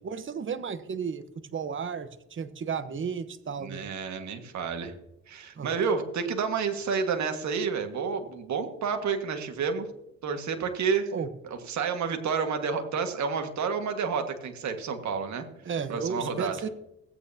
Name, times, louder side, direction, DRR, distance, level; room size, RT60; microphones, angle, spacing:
voice 1, 0.0-1.2 1.5-3.9 5.6-5.8 11.1-11.3 15.6-16.7, right 6 dB, 40° right, 11 dB, 1.0 m, -33 dB
voice 2, 3.6-4.9 5.3-9.9 10.2-15.5 15.9-16.6, right 5 dB, 65° right, 6 dB, 1.7 m, -30 dB
16.5 x 9.0 x 2.8 m, 0.84 s
cardioid pair, 90°, 30 cm